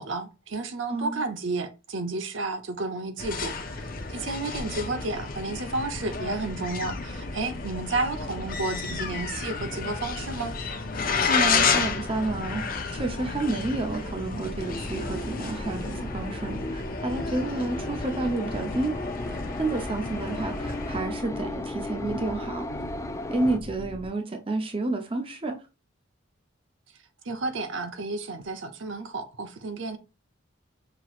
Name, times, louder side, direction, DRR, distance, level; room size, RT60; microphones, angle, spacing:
voice 1, 0.0-3.8 4.1-10.6 27.2-30.0, right 3 dB, 70° right, 0.7 m, -32 dB
voice 2, 0.9-1.2 11.3-12.7 12.9-18.9 19.6-22.6 23.3-25.6, right 2 dB, 25° right, 0.6 m, -30 dB
sound 1, 3.2-21.0, left 5 dB, 45° left, 0.7 m, -32 dB
sound 2, 4.5-24.1, left 1 dB, 75° left, 0.8 m, -41 dB
sound 3, 14.6-23.6, left 1 dB, 15° left, 0.3 m, -36 dB
5.8 x 3.0 x 2.4 m
head